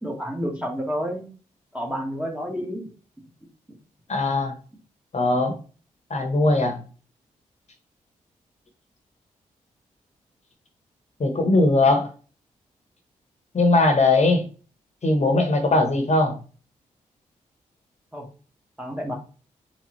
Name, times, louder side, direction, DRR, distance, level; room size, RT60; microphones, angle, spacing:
voice 1, 0.0-1.2 1.7-2.9 18.1-18.3 18.8-19.1, equal, 5° right, 1 dB, 1.6 m, -29 dB
voice 2, 4.1-4.5 5.1-5.5 6.1-6.8 11.2-12.1 13.5-14.4 15.0-16.4, left 2 dB, 45° left, 4 dB, 1.1 m, -19 dB
4.1 x 3.6 x 3.1 m, 0.37 s
supercardioid pair, 40°, 15 cm